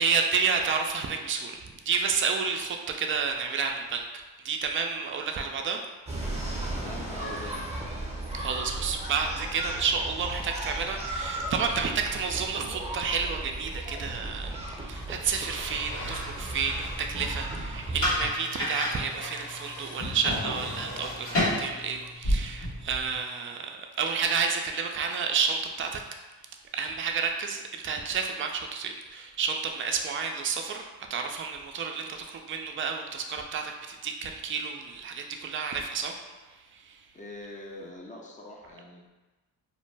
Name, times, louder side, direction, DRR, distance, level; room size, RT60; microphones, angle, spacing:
voice 1, 0.0-4.0 4.4-5.8 8.3-26.0 26.7-36.1 36.8-37.0, right 5 dB, 30° right, 3 dB, 0.4 m, -30 dB
sound 1, 6.1-18.3, right 1 dB, 15° right, 0.7 m, -35 dB
voice 2, 6.7-7.9 37.1-39.1, left 1 dB, 20° left, -1 dB, 0.6 m, -43 dB
Engine, 14.9-17.4 17.7-22.1, left 1 dB, 45° left, 1.1 m, -46 dB
sound 2, 15.7-23.2, left 1 dB, 70° left, 1.4 m, -32 dB
2.5 x 2.1 x 3.2 m, 1.2 s
cardioid pair, 45°, 43 cm